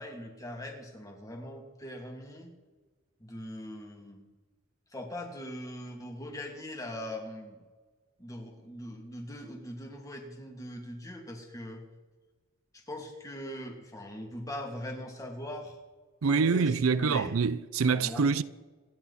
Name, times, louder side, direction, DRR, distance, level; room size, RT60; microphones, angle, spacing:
voice 1, 0.0-2.5 3.2-4.2 4.9-7.6 8.2-11.8 12.7-15.8 16.2-17.3 17.9-18.3, equal, 15° left, 2.6 m, -41 dB
voice 2, 16.2-18.4, right 5 dB, 90° right, 0.5 m, -25 dB
27.0 x 10.5 x 4.2 m
head